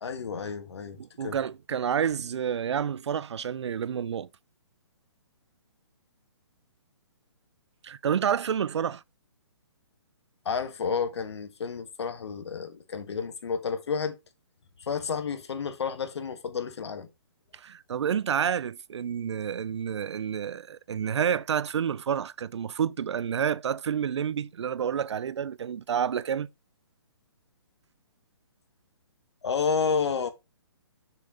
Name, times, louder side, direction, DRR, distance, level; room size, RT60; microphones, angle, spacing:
voice 1, 0.0-1.0 1.2-1.4 10.5-14.2 14.8-17.1 29.4-30.3, left 6 dB, 70° left, 1.6 m, -30 dB
voice 2, 1.0-4.3 7.8-9.0 17.5-26.5, right 8 dB, 75° right, 0.5 m, -29 dB
6.8 x 6.6 x 3.8 m
hypercardioid pair, 155°, 15 cm